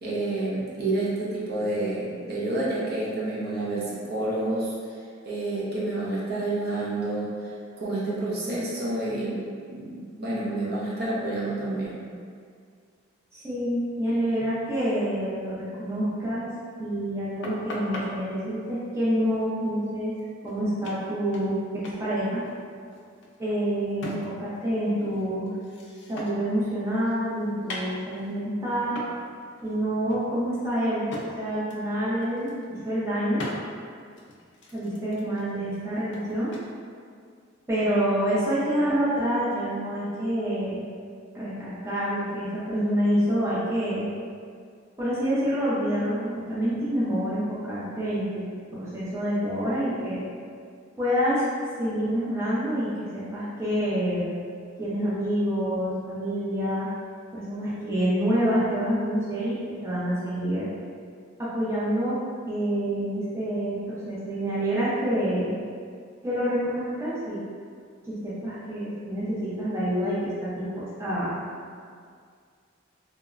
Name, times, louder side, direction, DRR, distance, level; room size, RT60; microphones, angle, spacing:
voice 1, 0.0-4.7 5.3-7.5 7.8-9.4 9.7-12.0, right 2 dB, 55° right, -7 dB, 0.6 m, -29 dB
voice 2, 13.3-16.5 16.8-20.1 20.4-22.4 23.4-25.5 26.1-29.0 29.6-31.1 31.3-33.4 34.7-36.5 37.7-40.8 41.3-44.1 45.0-48.4 48.7-50.2 51.0-51.5 51.8-54.3 54.8-56.9 57.3-60.7 61.4-62.2 62.5-65.5 66.2-67.4 68.0-71.4, equal, 15° right, -10 dB, 0.5 m, -27 dB
sound 1, 17.4-18.1 20.2-20.3 20.5-20.6 20.8-21.6 21.8-22.0 22.3-24.6 24.9-26.6 26.9-28.4 29.0-29.2 29.6-29.8 30.1-31.3 31.7-31.9 32.2-32.8 33.4-33.6 34.1-36.7, left 1 dB, 65° left, 0.4 m, -40 dB
2.9 x 2.1 x 2.4 m, 2.1 s
head